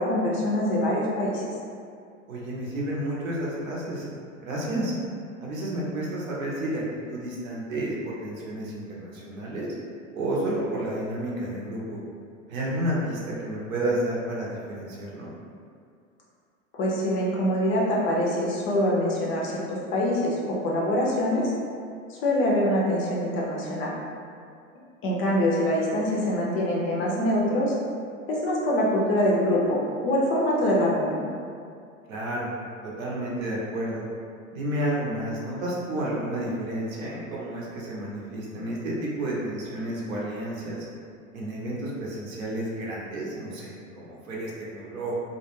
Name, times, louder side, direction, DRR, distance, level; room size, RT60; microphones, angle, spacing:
voice 1, 0.0-1.5 16.7-21.5 22.1-23.9 25.0-27.7 28.3-31.2, left 1 dB, 30° left, -4 dB, 0.5 m, -24 dB
voice 2, 2.3-4.0 4.4-4.9 5.4-9.7 10.1-12.0 12.5-15.3 32.1-32.5 32.8-34.0 34.5-40.9 41.3-45.2, right 1 dB, 80° right, -4 dB, 0.8 m, -31 dB
2.3 x 2.1 x 3.0 m, 2.3 s
hypercardioid pair, 90°, 40 cm